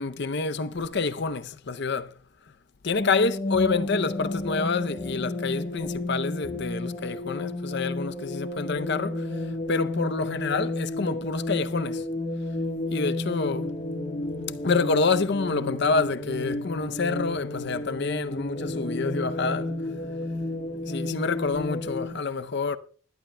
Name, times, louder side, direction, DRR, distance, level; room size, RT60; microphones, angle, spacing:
voice 1, 0.0-2.1 2.8-9.3 9.7-12.0 12.9-13.7 14.6-19.7 20.9-22.8, left 4 dB, 50° left, 0.6 m, -27 dB
sound 1, 2.9-22.1, left 1 dB, 35° left, 1.3 m, -32 dB
21.0 x 11.5 x 2.2 m
head